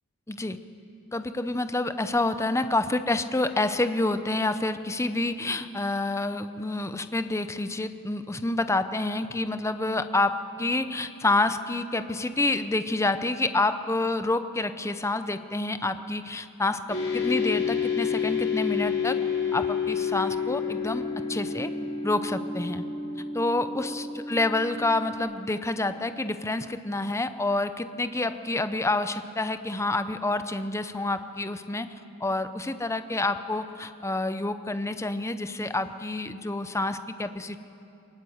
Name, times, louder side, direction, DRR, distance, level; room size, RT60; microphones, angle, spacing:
voice 1, 0.3-0.6 1.1-19.2 19.5-21.0 21.3-21.7 22.0-22.8 23.3-31.9 32.2-37.7, left 2 dB, 15° left, 11 dB, 0.6 m, -28 dB
sound 1, 16.9-25.2, left 6 dB, 60° left, 6.5 m, -29 dB
22.0 x 19.5 x 7.9 m, 2.7 s
head